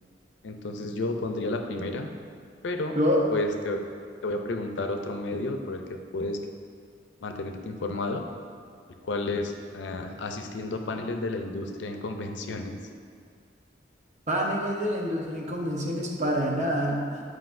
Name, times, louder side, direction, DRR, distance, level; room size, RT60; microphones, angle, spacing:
voice 1, 0.4-2.1 2.6-3.0 3.3-3.8 4.2-6.4 7.2-8.2 9.0-12.8, left 2 dB, 85° left, 5 dB, 0.5 m, -31 dB
voice 2, 14.3-17.2, equal, 40° right, -1 dB, 0.8 m, -26 dB
7.8 x 4.8 x 2.6 m, 2.3 s
head